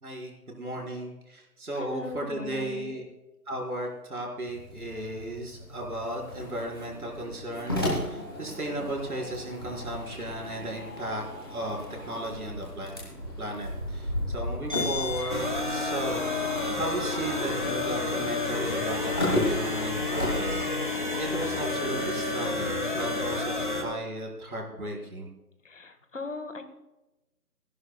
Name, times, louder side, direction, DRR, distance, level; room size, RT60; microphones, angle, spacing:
voice 1, 0.0-3.1 3.5-11.2 11.5-25.3, right 1 dB, 65° right, -1 dB, 4.7 m, -35 dB
voice 2, 1.7-3.0 25.6-26.6, left 3 dB, 50° left, 9 dB, 1.5 m, -38 dB
sound 1, 4.5-20.6, left 1 dB, 15° left, 1.5 m, -35 dB
sound 2, 15.3-23.8, left 2 dB, 30° left, 1.1 m, -30 dB
25.0 x 11.0 x 2.3 m, 1.0 s
figure-of-eight pair, 175°, 48 cm